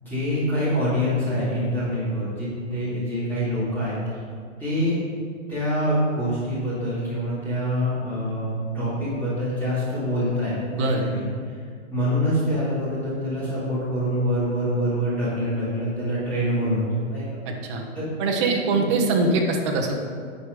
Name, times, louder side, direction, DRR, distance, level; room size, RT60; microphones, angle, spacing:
voice 1, 0.0-4.0 4.6-5.0 5.5-11.5 11.9-17.2 17.9-18.1 18.7-18.9, equal, 5° left, -12 dB, 2.5 m, -25 dB
voice 2, 17.5-17.8 18.2-19.9, right 3 dB, 25° right, 1 dB, 0.8 m, -23 dB
10.0 x 5.0 x 5.1 m, 2.1 s
hypercardioid pair, 165°, 38 cm